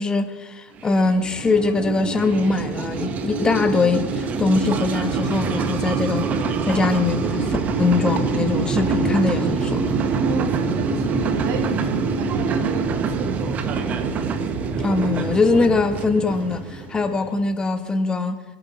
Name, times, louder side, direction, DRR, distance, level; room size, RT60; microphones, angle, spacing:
voice 1, 0.0-6.3 6.6-7.5 7.8-9.8 14.8-18.4, left 3 dB, 20° left, 1.6 m, -22 dB
sound 1, 0.8-17.5, right 4 dB, 35° right, 1.4 m, -25 dB
voice 2, 10.2-13.9, right 6 dB, 55° right, 2.1 m, -31 dB
24.0 x 11.0 x 4.2 m
hypercardioid pair, 100°, 4 cm